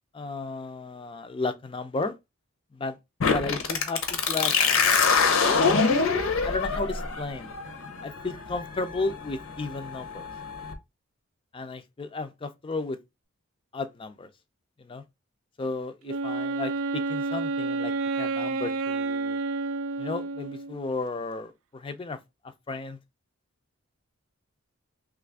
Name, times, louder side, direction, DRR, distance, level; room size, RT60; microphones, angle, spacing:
voice 1, 0.1-2.2 2.7-3.0 3.3-4.5 6.4-7.5 8.0-10.3 11.5-13.0 13.7-14.3 14.8-15.0 15.6-19.4 20.0-22.2 22.7-23.0, left 3 dB, 25° left, 0.3 m, -33 dB
sound 1, 3.2-10.7, left 5 dB, 65° left, 0.7 m, -25 dB
Wind instrument woodwind instrument, 16.1-20.9, right 3 dB, 70° right, 0.3 m, -30 dB
3.1 x 2.4 x 3.4 m
head